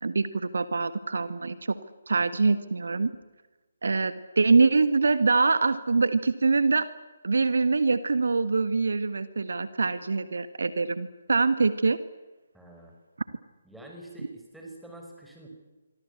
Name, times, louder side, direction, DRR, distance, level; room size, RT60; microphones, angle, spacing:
voice 1, 0.0-1.8 2.1-3.1 3.8-6.9 7.2-12.0, right 4 dB, 60° right, 12 dB, 1.5 m, -24 dB
voice 2, 12.5-12.9 13.6-15.5, right 1 dB, 5° right, 0 dB, 5.8 m, -46 dB
27.0 x 24.0 x 8.5 m, 1.2 s
figure-of-eight pair, 140°, 0 cm